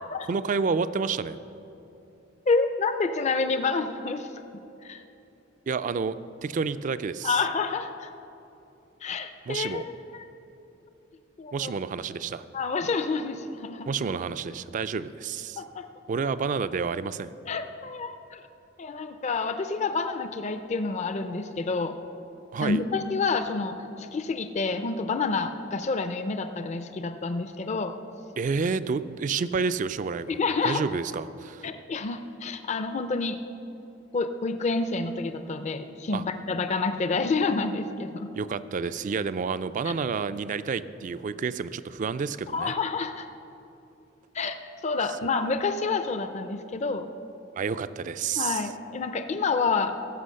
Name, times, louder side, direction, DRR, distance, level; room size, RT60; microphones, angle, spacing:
voice 1, 0.3-1.4 5.7-6.1 6.4-7.4 9.5-9.8 11.5-12.4 13.9-15.6 16.1-17.3 22.5-22.8 28.4-30.4 30.6-31.7 36.1-36.2 38.3-42.7 47.6-48.7, right 5 dB, 40° right, 14 dB, 0.3 m, -29 dB
voice 2, 2.5-4.3 4.8-5.0 7.2-8.1 9.0-10.3 11.4-11.7 12.5-13.9 15.6-15.8 17.5-18.4 18.8-21.9 22.6-27.9 30.3-30.8 31.6-33.4 34.1-38.3 42.5-43.3 44.3-44.6 44.8-47.1 48.4-49.9, left 4 dB, 35° left, 8 dB, 0.4 m, -28 dB
15.0 x 6.2 x 6.4 m, 2.9 s
head